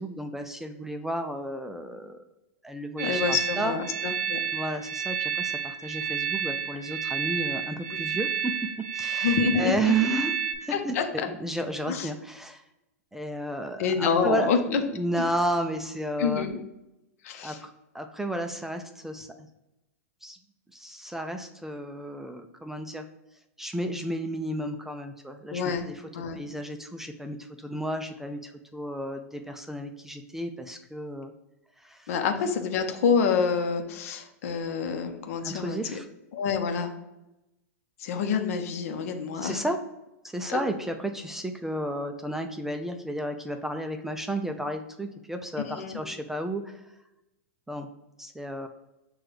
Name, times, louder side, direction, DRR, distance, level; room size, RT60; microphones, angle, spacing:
voice 1, 0.0-2.2 2.6-3.7 4.5-8.6 8.9-12.6 13.1-14.5 14.8-16.5 17.4-17.7 17.9-19.5 20.2-20.4 20.7-23.1 23.6-26.0 26.3-31.3 31.8-32.1 35.4-36.1 39.4-39.8 40.2-46.8 47.7-47.9 48.2-48.7, right 1 dB, 5° right, 6 dB, 0.3 m, -32 dB
voice 2, 3.0-4.4 9.2-10.1 10.7-11.3 11.9-12.1 13.8-14.8 16.2-16.6 17.2-17.6 25.5-25.9 26.1-26.4 32.1-36.0 36.3-36.9 38.0-39.6 40.5-40.6 45.7-46.0, left 6 dB, 65° left, 6 dB, 0.7 m, -27 dB
sound 1, 3.0-10.5, right 7 dB, 90° right, 0.6 m, -30 dB
5.9 x 2.3 x 3.2 m, 0.93 s
hypercardioid pair, 115°, 8 cm